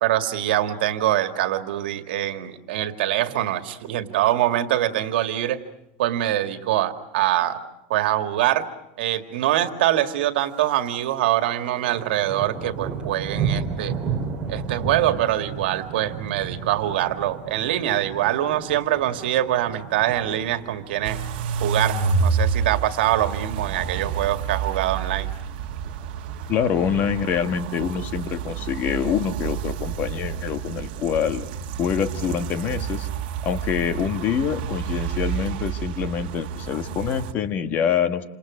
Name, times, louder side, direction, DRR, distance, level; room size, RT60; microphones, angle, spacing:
voice 1, 0.0-5.6 6.0-7.6 7.9-8.6 9.0-14.0 14.5-21.2 21.6-25.3, right 13 dB, 85° right, 8 dB, 2.1 m, -24 dB
Thunder, 10.4-10.9 11.2-21.6 22.0-22.3 22.8-23.2 23.5-23.6 23.7-23.8 24.2-24.8 25.6-26.5, right 6 dB, 15° right, 3.3 m, -33 dB
sound 1, 21.0-37.3, right 6 dB, 65° right, 1.7 m, -29 dB
voice 2, 26.5-31.5 31.8-33.1 33.4-38.2, left 8 dB, 30° left, 10 dB, 1.3 m, -25 dB
28.5 x 27.5 x 6.4 m, 0.84 s
supercardioid pair, 170°, 5 cm